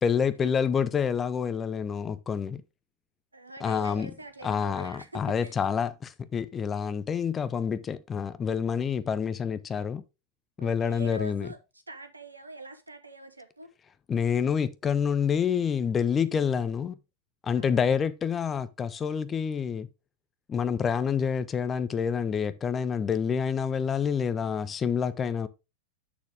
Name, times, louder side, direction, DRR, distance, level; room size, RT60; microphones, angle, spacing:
voice 1, 0.0-2.6 3.6-4.1 4.4-10.0 10.6-11.5 14.1-17.0 17.4-19.9 20.5-25.5, left 7 dB, 20° left, 0.5 m, -27 dB
voice 2, 3.3-5.6 10.6-11.6 11.9-13.7 17.5-17.9, right 2 dB, 80° right, 1.1 m, -43 dB
7.1 x 6.5 x 3.5 m
figure-of-eight pair, 90°, 0 cm